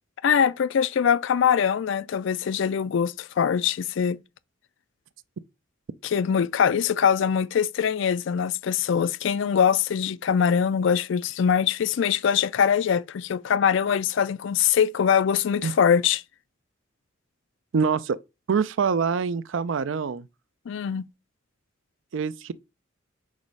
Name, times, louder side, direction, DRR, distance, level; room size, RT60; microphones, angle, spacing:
voice 1, 0.2-4.2 6.0-16.2 20.7-21.0, left 7 dB, 65° left, 0.4 m, -23 dB
voice 2, 17.7-18.2 18.5-20.3 22.1-22.5, right 5 dB, 70° right, 0.4 m, -25 dB
4.8 x 4.0 x 5.4 m
head